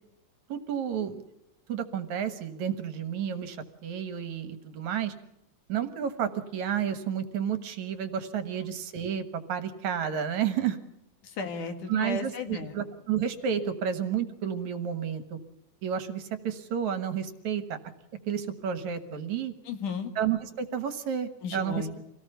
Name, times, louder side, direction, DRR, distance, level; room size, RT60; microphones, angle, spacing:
voice 1, 0.5-1.2 1.7-5.1 5.7-10.8 11.9-15.4 15.8-17.8 18.3-19.5 20.2-21.9, right 8 dB, 65° right, 10 dB, 2.5 m, -31 dB
voice 2, 11.2-12.8 19.7-20.1 21.4-22.0, left 5 dB, 70° left, 7 dB, 3.5 m, -34 dB
26.5 x 18.0 x 6.8 m, 0.84 s
omnidirectional pair, 3.8 m